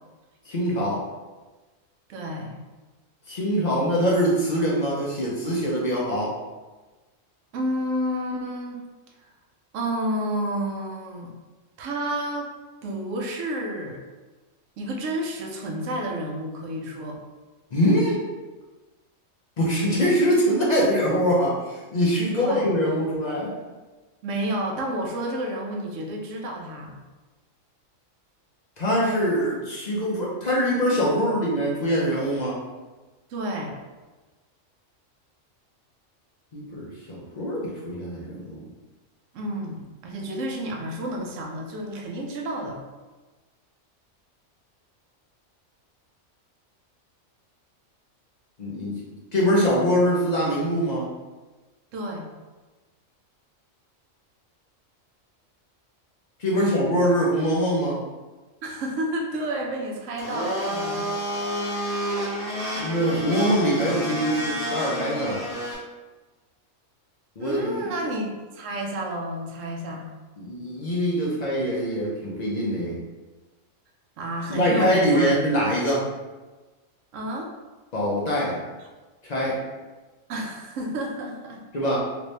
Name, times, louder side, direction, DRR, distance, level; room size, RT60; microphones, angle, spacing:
voice 1, 0.5-1.0 3.3-6.3 17.7-18.2 19.6-23.5 28.8-32.6 36.5-38.6 48.6-48.9 49.3-51.1 56.4-58.0 62.8-65.4 67.4-67.9 70.4-72.9 74.5-76.1 77.9-78.6 79.2-79.6 81.7-82.0, equal, 45° left, -5 dB, 0.6 m, -23 dB
voice 2, 2.1-2.6 7.5-8.8 9.7-11.3 11.8-12.5 12.8-14.0 14.8-17.2 22.4-22.7 24.2-27.0 33.3-33.8 39.3-42.8 51.9-52.3 56.5-56.8 58.6-61.5 67.4-70.1 74.2-75.3 77.1-77.5 78.8-78.9 80.3-81.6, right 1 dB, 75° right, 0 dB, 1.0 m, -30 dB
Domestic sounds home sounds, 60.2-65.7, equal, 5° right, 0.8 m, -30 dB
2.9 x 2.6 x 3.2 m, 1.2 s
omnidirectional pair, 1.4 m